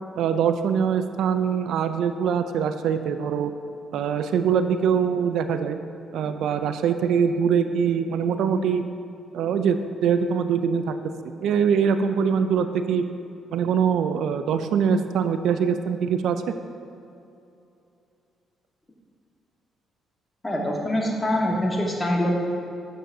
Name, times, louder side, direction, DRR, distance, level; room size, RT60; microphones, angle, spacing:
voice 1, 0.2-3.5 3.9-5.8 6.1-8.8 9.3-11.0 11.2-13.0 13.5-16.4, right 7 dB, 80° right, 9 dB, 0.3 m, -23 dB
voice 2, 20.4-22.3, left 1 dB, 15° left, -2 dB, 1.5 m, -24 dB
8.8 x 7.6 x 2.7 m, 2.7 s
cardioid pair, 90°, 0 cm